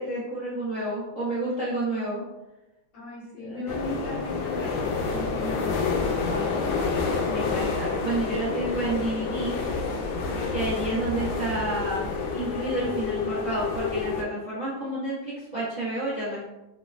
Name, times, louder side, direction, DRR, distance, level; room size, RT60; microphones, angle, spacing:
voice 1, 0.0-2.2 3.4-3.8 6.9-9.6 10.5-16.4, right 1 dB, 65° right, -9 dB, 0.4 m, -30 dB
voice 2, 2.9-6.6, equal, 60° left, -10 dB, 2.3 m, -37 dB
sound 1, 3.7-14.2, left 4 dB, 85° left, 1.5 m, -28 dB
4.9 x 2.0 x 2.4 m, 0.99 s
omnidirectional pair, 2.4 m